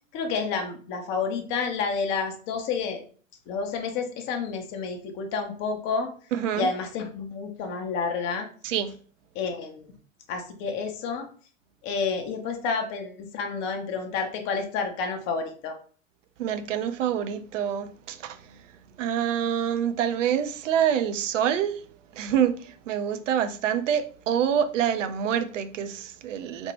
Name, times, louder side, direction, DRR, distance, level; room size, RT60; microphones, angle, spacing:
voice 1, 0.1-3.0 3.5-6.1 6.6-8.5 9.3-9.9 10.3-11.3 11.8-15.8, left 5 dB, 30° left, 0.5 m, -30 dB
voice 2, 6.3-6.7 8.6-8.9 16.4-18.4 19.0-21.8 22.1-26.7, right 9 dB, 70° right, 0.5 m, -26 dB
2.9 x 2.1 x 3.1 m
figure-of-eight pair, 90°, 39 cm